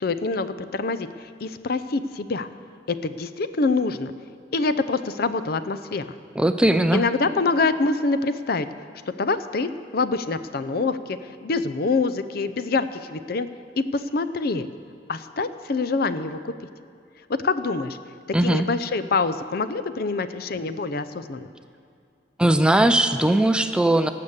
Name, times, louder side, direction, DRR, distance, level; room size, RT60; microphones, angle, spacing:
voice 1, 0.0-2.5 2.9-4.1 4.5-6.1 6.9-8.7 9.2-13.5 13.8-14.7 15.1-16.5 17.3-18.0 18.4-21.5, left 3 dB, 55° left, 12 dB, 0.5 m, -25 dB
voice 2, 6.4-7.0 18.3-18.7 22.4-24.1, right 1 dB, 5° right, 9 dB, 0.4 m, -19 dB
18.0 x 6.7 x 7.2 m, 2.5 s
head